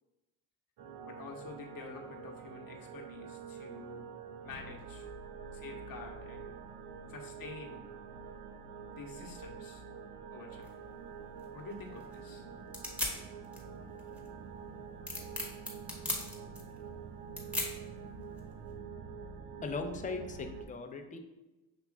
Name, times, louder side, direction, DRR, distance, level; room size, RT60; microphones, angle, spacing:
sound 1, 0.8-20.6, right 6 dB, 50° right, 0.6 m, -46 dB
voice 1, 1.0-4.1 4.4-5.1 5.5-6.6 7.1-7.8 8.9-9.8 10.3-10.7 11.5-12.5, left 4 dB, 45° left, 1 dB, 1.1 m, -48 dB
sound 2, 10.6-18.7, left 1 dB, 5° right, 1.2 m, -41 dB
voice 2, 19.6-21.2, left 4 dB, 15° left, 5 dB, 0.5 m, -39 dB
6.9 x 2.9 x 2.3 m, 1.1 s
supercardioid pair, 65°, 50 cm